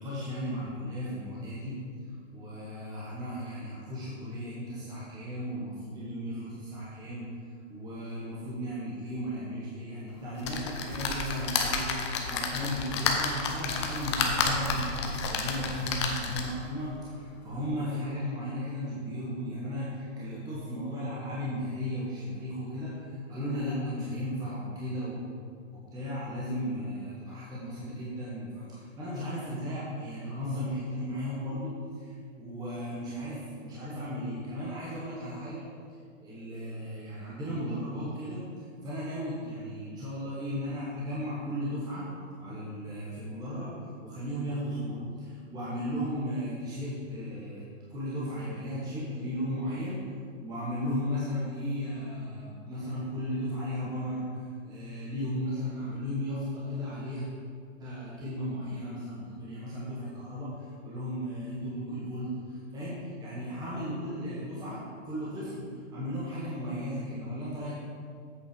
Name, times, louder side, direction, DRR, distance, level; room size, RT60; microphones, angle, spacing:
voice 1, 0.0-1.7 2.1-7.3 7.7-25.2 25.7-35.6 36.2-42.0 42.4-47.6 47.9-50.0 50.4-57.3 57.8-67.7, equal, 10° right, -8 dB, 1.3 m, -35 dB
sound 1, 10.4-16.7 17.2-17.3 17.6-17.7, left 4 dB, 20° left, 0.5 m, -30 dB
8.1 x 6.2 x 5.2 m, 2.1 s
hypercardioid pair, 155°, 39 cm